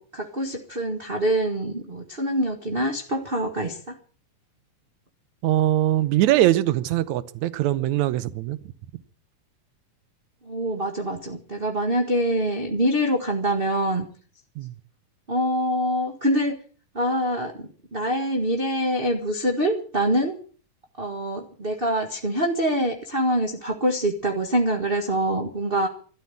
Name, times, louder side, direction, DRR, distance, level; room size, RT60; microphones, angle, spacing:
voice 1, 0.0-4.0 10.4-14.1 15.3-16.6 16.9-20.3 21.0-25.9, right 1 dB, 30° right, 1.0 m, -25 dB
voice 2, 5.4-8.6 14.6-14.7, right 14 dB, 70° right, 2.1 m, -22 dB
13.0 x 12.0 x 8.6 m
omnidirectional pair, 3.7 m